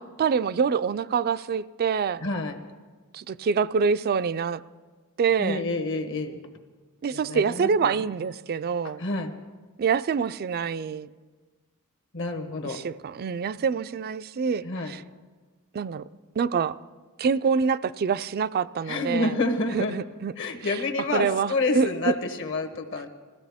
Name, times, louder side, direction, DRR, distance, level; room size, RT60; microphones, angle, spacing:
voice 1, 0.0-2.2 3.1-4.6 5.2-5.6 7.0-9.0 9.8-11.1 12.6-15.0 15.7-16.0 16.4-16.8 17.2-19.3 19.7-20.3 21.1-22.1, right 6 dB, 45° right, 16 dB, 0.3 m, -26 dB
voice 2, 2.2-2.6 5.4-6.4 7.1-7.9 8.8-9.3 12.1-12.8 14.6-14.9 18.9-19.9 20.4-23.1, left 2 dB, 60° left, 6 dB, 1.2 m, -28 dB
20.5 x 15.5 x 3.5 m, 1.4 s
head